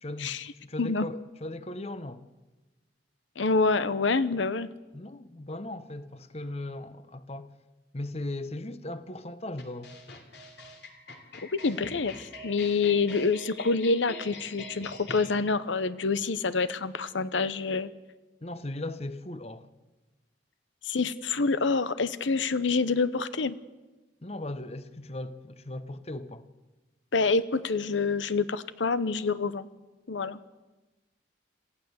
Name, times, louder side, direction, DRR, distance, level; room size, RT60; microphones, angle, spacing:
voice 1, 0.0-2.2 4.9-7.6 7.9-10.0 18.4-19.7 24.2-26.5, left 1 dB, 35° left, 0.9 m, -38 dB
voice 2, 3.4-4.7 11.6-17.9 20.8-23.6 27.1-29.7 30.1-30.4, left 4 dB, 85° left, 0.8 m, -27 dB
sound 1, 9.6-15.3, left 2 dB, 65° left, 2.9 m, -44 dB
27.0 x 15.0 x 7.9 m
head